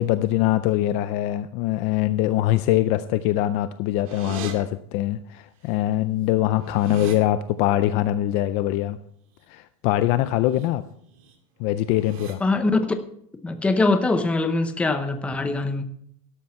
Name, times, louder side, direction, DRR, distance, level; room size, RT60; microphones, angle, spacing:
voice 1, 0.0-9.0 9.5-10.8 11.6-12.4, left 14 dB, 35° left, 12 dB, 0.4 m, -23 dB
sound 1, 4.0-4.5 5.7-5.8 6.1-7.2 10.3-10.7 11.0-11.3 11.8-12.3, right 7 dB, 75° right, 2.5 m, -39 dB
voice 2, 12.4-12.8 13.4-15.8, left 3 dB, 5° left, 8 dB, 0.7 m, -22 dB
12.5 x 11.5 x 4.2 m, 0.68 s
supercardioid pair, 175°, 18 cm